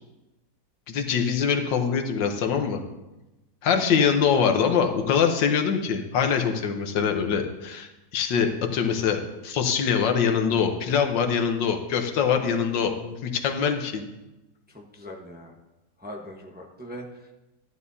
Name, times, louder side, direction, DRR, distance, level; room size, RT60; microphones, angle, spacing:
voice 1, 0.9-2.8 3.6-14.1, left 7 dB, 90° left, 5 dB, 1.7 m, -24 dB
voice 2, 14.7-15.5 16.0-17.0, equal, 10° right, 1 dB, 0.7 m, -40 dB
13.5 x 11.5 x 2.7 m, 1.0 s
omnidirectional pair, 1.9 m